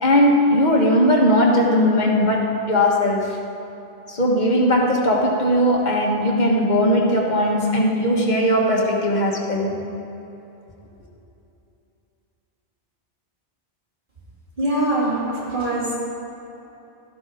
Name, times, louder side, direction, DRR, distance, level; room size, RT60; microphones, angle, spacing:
voice 1, 0.0-3.4 4.1-9.7, equal, 45° left, -1 dB, 1.6 m, -18 dB
voice 2, 14.6-15.9, right 1 dB, 50° right, -7 dB, 2.8 m, -23 dB
13.0 x 11.5 x 3.6 m, 2.9 s
omnidirectional pair, 1.1 m